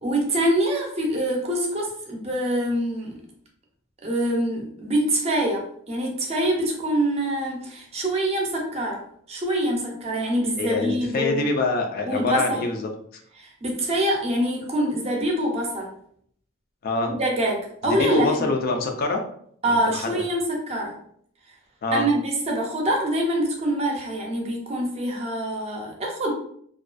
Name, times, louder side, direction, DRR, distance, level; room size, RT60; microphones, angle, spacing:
voice 1, 0.0-3.2 4.0-9.0 9.3-11.5 12.0-12.7 13.4-15.9 17.1-18.5 19.6-20.9 21.9-26.3, right 1 dB, 30° right, 0 dB, 0.5 m, -25 dB
voice 2, 10.6-13.2 16.8-17.1 17.8-19.2 19.6-20.2 21.8-22.0, left 3 dB, 45° left, 3 dB, 0.3 m, -25 dB
2.4 x 2.2 x 2.4 m, 0.65 s
head